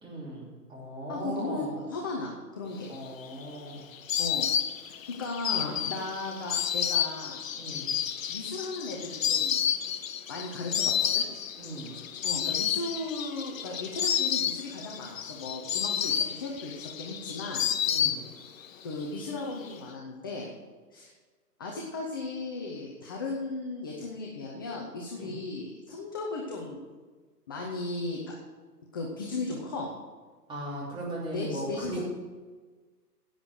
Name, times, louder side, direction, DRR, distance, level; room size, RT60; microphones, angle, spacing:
voice 1, 0.0-1.8 2.9-3.8 7.5-7.9 11.6-12.0 17.8-18.2 25.2-25.3 30.5-32.0, right 1 dB, 10° right, -6 dB, 3.2 m, -38 dB
voice 2, 1.1-2.9 4.2-4.5 4.9-7.4 8.3-9.6 10.3-11.2 12.2-17.6 18.8-20.5 20.9-21.1 21.6-26.8 27.5-28.3 28.9-29.9 31.3-32.0, left 3 dB, 15° left, -2 dB, 0.5 m, -36 dB
Insect, 2.9-18.7 18.9-19.7, left 9 dB, 55° left, 0.9 m, -30 dB
10.0 x 8.8 x 6.4 m, 1.4 s
hypercardioid pair, 140°, 49 cm